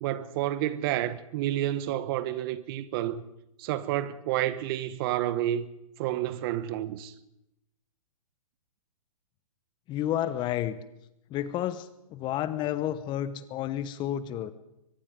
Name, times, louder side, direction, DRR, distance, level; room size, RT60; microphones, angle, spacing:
voice 1, 0.0-3.2 3.6-5.7 6.0-7.1, right 13 dB, 40° right, 1.3 m, -30 dB
voice 2, 9.9-10.8 11.3-14.5, left 11 dB, 25° left, 1.1 m, -31 dB
23.5 x 21.5 x 5.3 m
hypercardioid pair, 130°, 18 cm